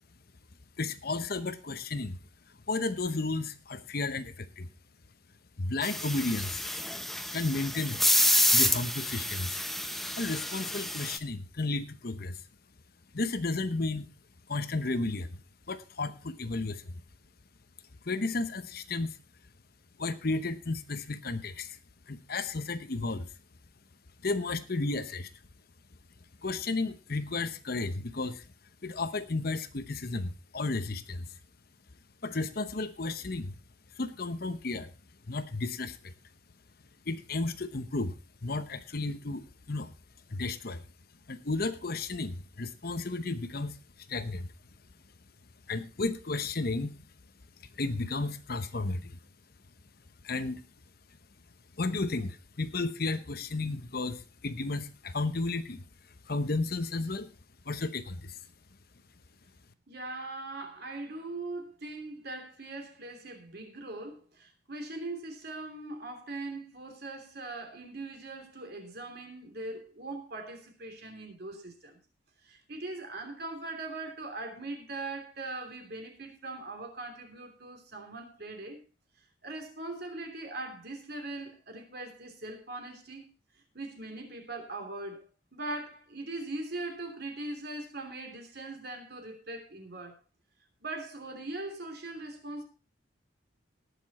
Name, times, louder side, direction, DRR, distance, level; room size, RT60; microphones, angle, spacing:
voice 1, 0.8-2.2 2.7-4.7 5.6-6.7 7.3-8.0 8.5-9.6 10.2-12.4 13.1-14.1 14.5-15.3 15.7-16.9 18.1-19.2 20.0-21.8 22.1-23.3 24.2-25.3 26.4-28.5 28.8-31.3 32.2-33.6 34.0-34.9 35.3-36.1 37.1-38.1 38.4-39.9 40.3-40.8 41.3-43.8 44.1-44.5 45.7-46.9 47.7-49.2 50.2-50.6 51.8-55.8 56.2-57.3 57.7-58.4, left 3 dB, 50° left, 0.9 m, -33 dB
sound 1, 5.8-11.2, left 1 dB, ahead, 0.7 m, -28 dB
voice 2, 59.9-72.0 72.4-78.8 79.4-83.3 83.5-90.2 90.8-92.6, right 2 dB, 50° right, 3.0 m, -41 dB
18.5 x 6.9 x 4.2 m
head